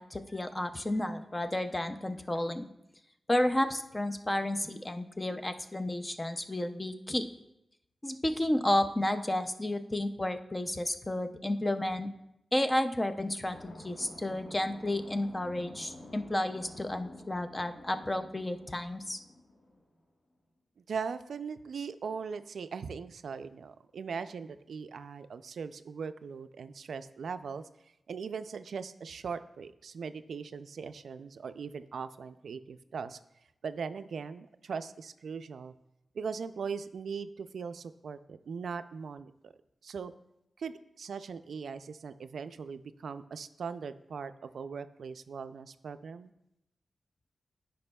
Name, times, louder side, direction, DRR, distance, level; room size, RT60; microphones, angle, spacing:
voice 1, 0.0-2.7 3.3-7.3 8.0-12.1 12.5-19.2, left 1 dB, 15° left, 8 dB, 0.4 m, -32 dB
sound 1, 13.4-19.8, left 1 dB, 55° left, 1.2 m, -50 dB
voice 2, 20.9-27.6 28.1-33.2 33.6-35.7 36.1-39.5 39.8-40.1 40.6-46.3, right 5 dB, 80° right, 11 dB, 0.3 m, -40 dB
13.5 x 5.2 x 2.2 m, 0.85 s
wide cardioid pair, 170°, 0 cm